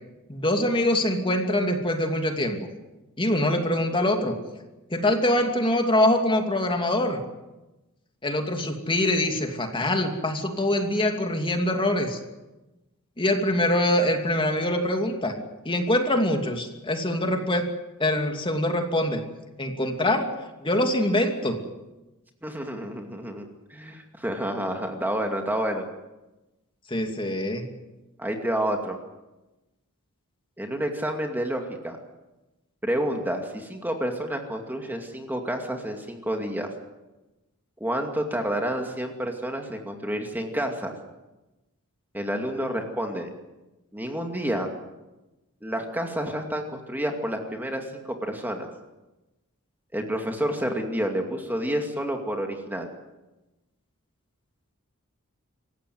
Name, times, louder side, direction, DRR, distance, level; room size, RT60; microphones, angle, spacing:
voice 1, 0.3-2.6 3.2-4.3 4.9-7.2 8.2-12.2 13.2-15.3 15.6-17.7 18.0-19.2 19.6-20.3 20.6-21.6 26.9-27.6, left 1 dB, 25° left, 4 dB, 2.7 m, -24 dB
voice 2, 22.4-25.8 28.2-29.0 30.6-32.0 32.8-36.7 37.8-40.9 42.1-43.3 43.9-44.7 45.6-48.7 49.9-52.9, right 1 dB, 10° right, 3 dB, 2.4 m, -29 dB
26.5 x 15.5 x 9.5 m, 1.0 s
head